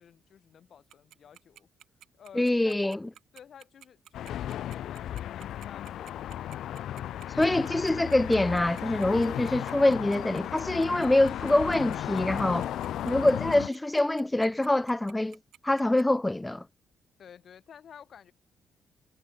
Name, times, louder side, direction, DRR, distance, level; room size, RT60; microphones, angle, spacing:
voice 1, 0.0-1.7 2.2-3.0 3.3-6.5 17.2-18.3, left 8 dB, 55° left, 4.9 m, -52 dB
Tick-tock, 0.9-16.0, right 11 dB, 75° right, 2.8 m, -52 dB
voice 2, 2.4-3.0 7.4-12.7 13.0-15.4 15.6-16.6, left 1 dB, 10° left, 0.4 m, -25 dB
sound 1, 4.1-13.7, left 11 dB, 75° left, 0.8 m, -35 dB
cardioid pair, 90°, 0 cm